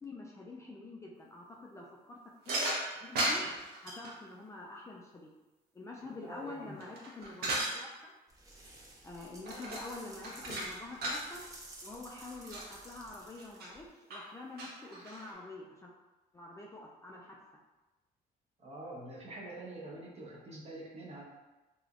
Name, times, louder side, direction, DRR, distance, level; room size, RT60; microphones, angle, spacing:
voice 1, 0.0-2.2 2.5-2.7 3.0-3.4 3.8-5.3 5.7-8.1 9.0-11.4 11.8-15.9 16.3-17.4, left 2 dB, 15° left, -2 dB, 0.4 m, -47 dB
sound 1, 2.5-4.1 6.5-7.7 9.5-9.9 10.2-11.2 11.9-12.0 12.2-12.7 13.4-13.7 14.1-14.2 14.6-15.3, right 1 dB, 65° right, 0.9 m, -35 dB
voice 2, 6.0-6.8 18.6-21.2, right 2 dB, 40° right, -4 dB, 1.0 m, -46 dB
sound 2, 8.3-13.9, right 1 dB, 20° right, 0.7 m, -53 dB
3.3 x 3.0 x 2.5 m, 1.1 s
cardioid pair, 110°, 17 cm